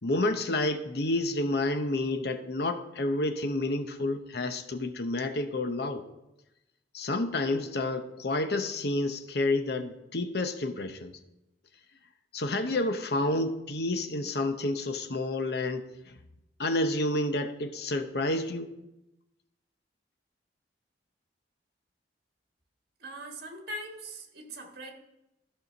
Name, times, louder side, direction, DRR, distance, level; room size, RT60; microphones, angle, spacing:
voice 1, 0.0-6.0 6.9-11.1 12.3-16.1 16.6-18.7, left 2 dB, 65° left, 8 dB, 0.9 m, -29 dB
voice 2, 23.0-24.9, right 1 dB, 60° right, 2 dB, 1.6 m, -41 dB
14.0 x 5.7 x 4.1 m, 0.92 s
head